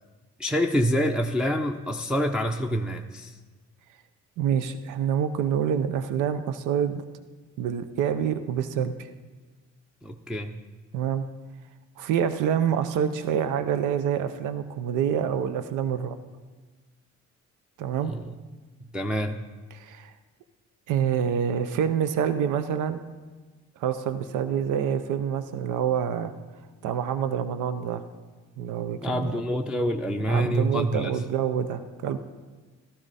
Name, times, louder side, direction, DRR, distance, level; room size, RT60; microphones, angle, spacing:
voice 1, 0.4-3.4 10.0-10.6 18.0-18.3 18.9-19.5 29.0-31.2, equal, 5° right, 1 dB, 0.6 m, -27 dB
voice 2, 4.4-7.0 7.6-9.1 10.9-11.2 12.0-16.2 17.8-18.1 19.7-20.1 20.9-23.0 23.8-26.3 26.8-28.0 28.6-29.4 30.3-32.2, right 8 dB, 85° right, 11 dB, 0.7 m, -27 dB
13.0 x 12.5 x 4.1 m, 1.3 s
cardioid pair, 90°, 30 cm